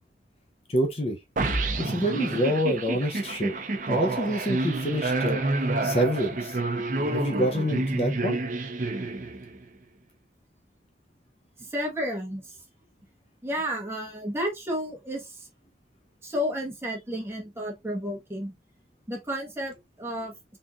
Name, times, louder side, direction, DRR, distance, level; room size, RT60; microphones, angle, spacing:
voice 1, 0.7-1.2 1.8-3.6 3.9-5.4 5.8-6.6 7.1-8.4, equal, 35° left, 0.6 m, -27 dB
sound 1, 1.4-9.6, right 2 dB, 45° right, 0.7 m, -28 dB
voice 2, 11.6-12.6 13.4-15.5 16.2-18.5 19.1-20.6, equal, 15° right, 1.3 m, -32 dB
4.1 x 3.6 x 2.4 m
head